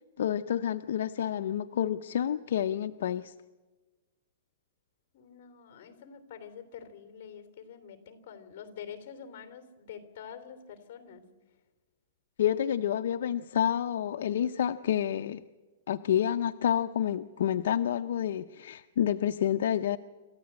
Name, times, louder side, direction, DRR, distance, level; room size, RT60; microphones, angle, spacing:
voice 1, 0.2-3.3 12.4-15.4 15.9-20.0, left 10 dB, 60° left, 8 dB, 0.6 m, -29 dB
voice 2, 5.1-11.2, left 8 dB, 35° left, 8 dB, 3.0 m, -46 dB
27.0 x 14.5 x 8.8 m, 1.3 s
hypercardioid pair, 175°, 0 cm